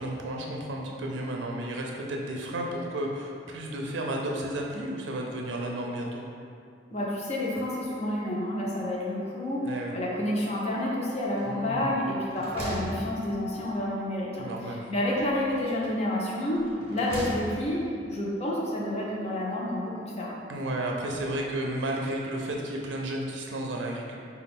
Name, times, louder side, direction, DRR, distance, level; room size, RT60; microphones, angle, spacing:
voice 1, 0.0-6.2 9.6-9.9 11.4-11.9 14.4-14.8 20.5-24.2, right 1 dB, 90° right, 0 dB, 0.4 m, -32 dB
voice 2, 6.9-20.4, left 1 dB, 35° left, -4 dB, 0.6 m, -29 dB
sound 1, 11.3-11.8 12.1-13.7 15.0-15.9 16.6-17.8, right 1 dB, 35° right, 0.7 m, -40 dB
4.9 x 2.3 x 3.5 m, 2.4 s
head